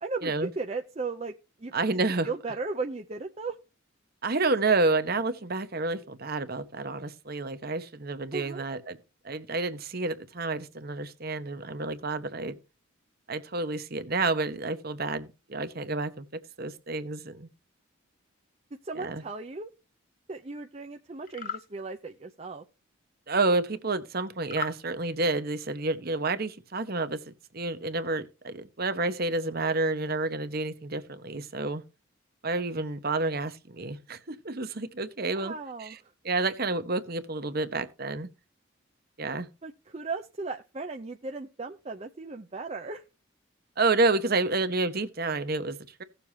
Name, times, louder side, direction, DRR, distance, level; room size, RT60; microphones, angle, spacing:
voice 1, 0.0-1.3 1.6-1.7 2.2-3.6 8.3-8.6 18.8-19.7 20.3-22.6 35.3-36.0 39.6-43.0, right 3 dB, 30° right, 0.6 m, -36 dB
voice 2, 1.7-2.3 4.2-9.0 9.2-12.6 13.3-17.5 18.9-19.2 23.3-31.8 32.4-35.5 35.8-36.0 36.2-38.3 39.2-39.5 43.8-46.0, right 3 dB, 45° right, 1.0 m, -29 dB
sound 1, 21.2-21.7 24.4-24.8, left 8 dB, 40° left, 0.6 m, -36 dB
17.0 x 6.9 x 2.8 m
head